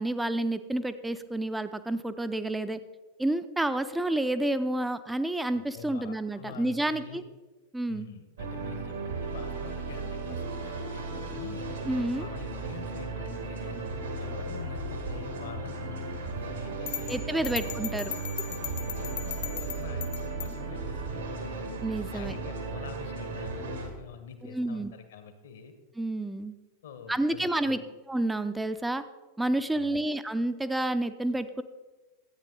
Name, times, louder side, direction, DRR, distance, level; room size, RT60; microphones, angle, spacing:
voice 1, 0.0-2.8 3.2-7.2 7.7-8.1 11.8-12.3 17.1-18.1 21.8-22.4 24.4-24.9 26.0-26.5 27.1-27.8 28.1-29.0 29.4-31.6, right 1 dB, 5° right, 11 dB, 0.5 m, -29 dB
voice 2, 5.5-7.2 7.9-11.8 12.1-13.8 14.2-18.1 18.6-20.1 20.4-21.8 22.1-25.7 26.8-27.9 29.7-30.0, left 6 dB, 60° left, 8 dB, 1.1 m, -46 dB
sound 1, 8.4-23.9, right 3 dB, 70° right, 1.8 m, -35 dB
sound 2, 16.9-20.6, left 11 dB, 45° left, 0.7 m, -38 dB
13.0 x 8.9 x 3.9 m, 1.2 s
figure-of-eight pair, 90°, 0 cm